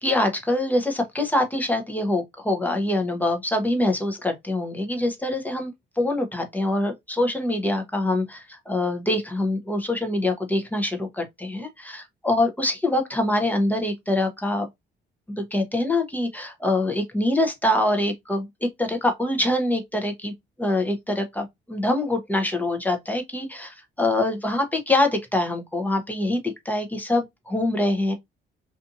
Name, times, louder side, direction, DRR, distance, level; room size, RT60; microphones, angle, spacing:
voice 1, 0.0-14.7 15.4-20.3 20.6-28.1, left 1 dB, 10° left, 0.7 m, -24 dB
2.6 x 2.5 x 2.6 m
cardioid pair, 90°, 20 cm